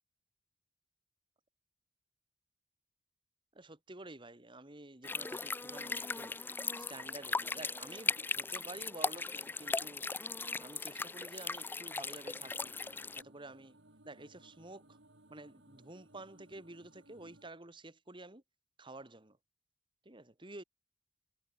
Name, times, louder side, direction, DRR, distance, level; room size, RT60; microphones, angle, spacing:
voice 1, 3.5-6.4 6.8-10.0 10.6-12.7 13.2-13.8 14.0-15.0 15.3-18.4 18.8-19.4 20.1-20.6, right 2 dB, 25° right, 1.9 m, -50 dB
sound 1, 5.0-13.2, left 3 dB, 10° left, 0.3 m, -38 dB
sound 2, 12.2-17.5, right 1 dB, 65° right, 4.6 m, -62 dB
head